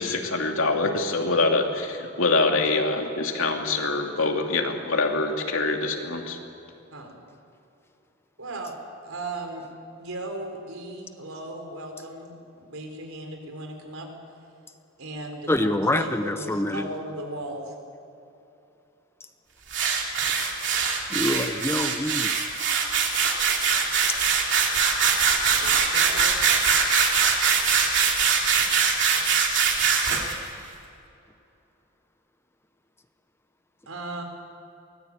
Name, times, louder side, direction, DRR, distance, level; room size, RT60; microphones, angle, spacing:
voice 1, 0.0-6.4, left 3 dB, 70° left, 2 dB, 2.7 m, -24 dB
voice 2, 8.4-8.8 9.0-9.6 10.0-14.1 15.0-17.7 25.6-26.3 33.9-34.2, right 2 dB, 80° right, 3 dB, 4.2 m, -37 dB
voice 3, 15.5-16.9 21.1-22.3, left 1 dB, 10° left, 8 dB, 0.8 m, -25 dB
sound 1, 19.7-30.4, right 6 dB, 55° right, 3.0 m, -22 dB
23.5 x 20.0 x 8.4 m, 2.8 s
head